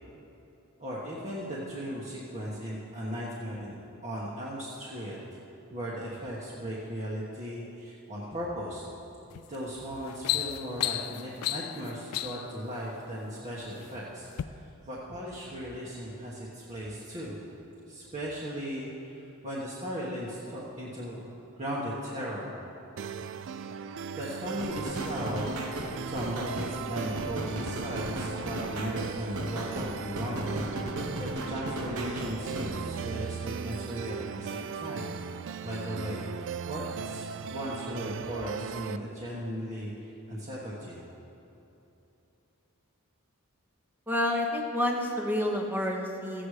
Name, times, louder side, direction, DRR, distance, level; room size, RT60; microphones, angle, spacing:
voice 1, 0.8-3.7 4.0-5.2 5.7-8.8 9.5-14.3 14.5-17.4 17.9-22.5 24.2-25.6 26.0-30.7 31.2-35.1 35.6-41.0, equal, 30° right, -7 dB, 1.3 m, -37 dB
sound 1, 9.3-9.6 9.9-12.6 13.4-13.9 14.3-14.4, left 13 dB, 90° left, 0.4 m, -33 dB
sound 2, 23.0-39.0, right 6 dB, 55° right, 0.3 m, -38 dB
sound 3, 24.6-32.8, right 1 dB, 85° right, 1.2 m, -36 dB
voice 2, 44.1-46.5, left 1 dB, 10° right, 1 dB, 1.0 m, -29 dB
15.0 x 8.2 x 4.9 m, 3.0 s
head